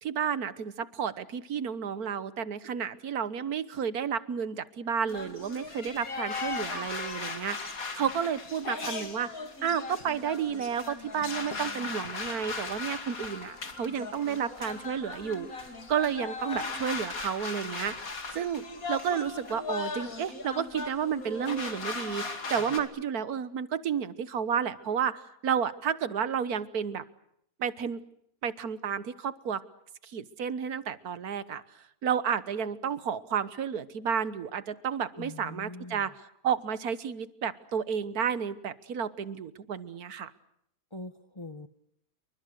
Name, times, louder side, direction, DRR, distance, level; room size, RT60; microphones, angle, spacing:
voice 1, 0.0-18.1 18.3-27.0 27.6-28.0 28.4-29.6 30.0-31.6 32.0-36.1 36.4-40.3, right 7 dB, 85° right, 15 dB, 1.7 m, -31 dB
sound 1, 5.1-22.8, left 4 dB, 70° left, 3.0 m, -38 dB
voice 2, 35.1-36.1 40.9-41.7, left 2 dB, 20° left, 10 dB, 1.0 m, -43 dB
28.5 x 24.0 x 6.5 m, 0.72 s
omnidirectional pair, 1.6 m